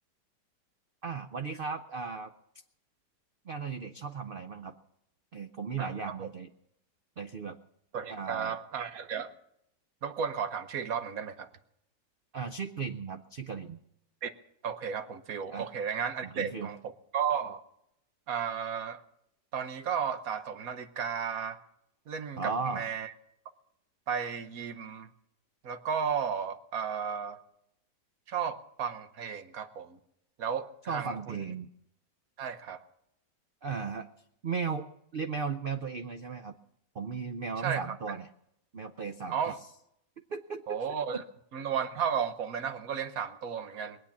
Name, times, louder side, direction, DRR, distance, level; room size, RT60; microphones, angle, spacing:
voice 1, 1.0-2.3 3.4-4.7 5.3-6.5 7.2-7.6 8.1-8.6 12.3-13.8 15.5-15.7 16.2-16.7 22.4-22.9 30.9-31.7 33.6-34.1 34.4-36.5 36.9-38.3 38.7-39.6 40.3-41.2, right 5 dB, 85° right, 8 dB, 0.4 m, -36 dB
voice 2, 7.9-9.3 10.0-11.5 14.2-14.3 14.6-16.8 17.1-17.6 18.3-19.0 19.5-21.6 22.1-23.1 24.1-25.1 25.6-27.4 28.3-30.0 30.4-31.4 32.4-32.8 37.6-37.9 39.3-39.5 40.7-41.2 41.5-44.0, right 7 dB, 60° right, 10 dB, 1.3 m, -34 dB
21.0 x 8.7 x 7.2 m, 0.78 s
omnidirectional pair, 1.9 m